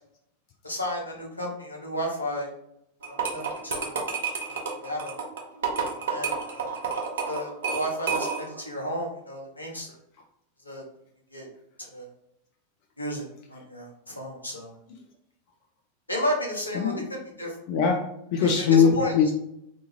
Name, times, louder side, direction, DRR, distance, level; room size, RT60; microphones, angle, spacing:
voice 1, 0.6-2.5 3.0-3.9 4.5-5.2 6.0-6.8 7.3-9.9 10.6-10.8 11.3-11.5 11.9-12.1 13.0-14.7 16.1-17.6 18.4-19.1, equal, 85° left, -1 dB, 0.7 m, -33 dB
sound 1, 3.0-8.6, right 5 dB, 60° right, 0.6 m, -30 dB
voice 2, 16.7-17.1 17.7-19.3, left 6 dB, 45° left, 2 dB, 0.4 m, -21 dB
2.6 x 2.4 x 2.8 m, 0.76 s
figure-of-eight pair, 90°, 0 cm